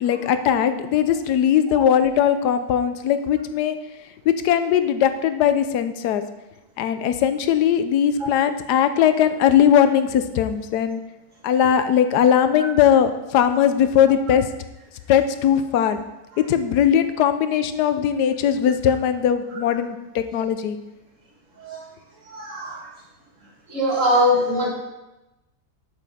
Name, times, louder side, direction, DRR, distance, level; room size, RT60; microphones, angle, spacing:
voice 1, 0.0-3.8 4.3-6.2 6.8-11.0 11.4-14.5 15.1-16.0 16.5-20.8, left 9 dB, 85° left, 10 dB, 1.2 m, -19 dB
voice 2, 22.3-22.8 23.7-24.7, left 1 dB, 50° right, -2 dB, 2.0 m, -21 dB
9.0 x 7.4 x 3.5 m, 0.99 s
omnidirectional pair, 1.7 m